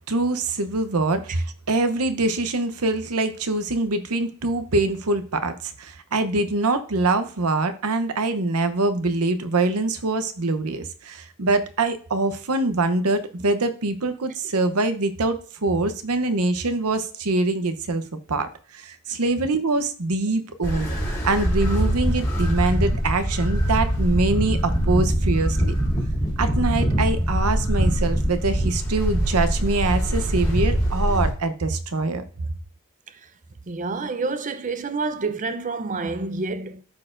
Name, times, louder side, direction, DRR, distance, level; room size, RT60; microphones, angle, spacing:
voice 1, 0.1-18.0 18.3-20.9 21.2-25.7 26.4-32.2, right 2 dB, 85° right, 0.8 m, -24 dB
sound 1, 20.6-31.3, equal, 15° left, 2.4 m, -23 dB
voice 2, 33.7-36.8, right 3 dB, 35° right, 0.5 m, -28 dB
12.5 x 4.3 x 2.5 m
head